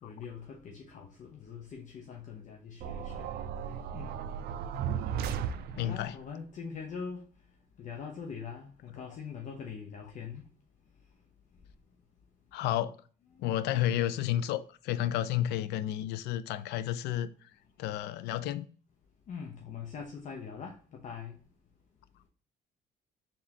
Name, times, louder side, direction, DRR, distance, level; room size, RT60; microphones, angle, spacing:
voice 1, 0.0-3.3 3.9-4.2 5.7-7.3 7.8-10.4 19.3-21.4, left 6 dB, 50° left, 0.7 m, -43 dB
sound 1, 2.8-6.2, right 8 dB, 70° right, 0.5 m, -35 dB
voice 2, 5.8-6.1 12.5-13.0 13.4-17.3 17.8-18.7, left 12 dB, 80° left, 0.4 m, -31 dB
4.3 x 3.6 x 2.8 m
cardioid pair, 110°, 17 cm